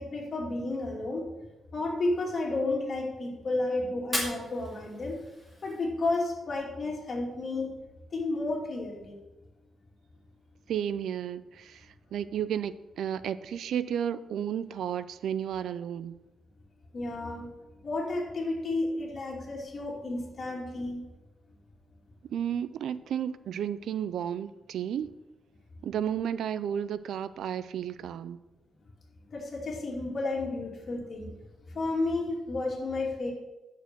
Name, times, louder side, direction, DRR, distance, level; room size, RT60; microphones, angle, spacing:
voice 1, 0.0-1.3 1.7-5.2 5.6-7.7 8.1-9.2 16.9-17.5 17.8-21.0 29.3-31.4 31.7-33.3, left 2 dB, 40° left, 2.7 m, -32 dB
Fire, 4.0-6.0, left 1 dB, ahead, 2.5 m, -37 dB
voice 2, 10.7-16.2 22.3-25.1 25.8-28.4, right 9 dB, 85° right, 0.4 m, -32 dB
9.3 x 6.7 x 6.2 m
wide cardioid pair, 140°, 0 cm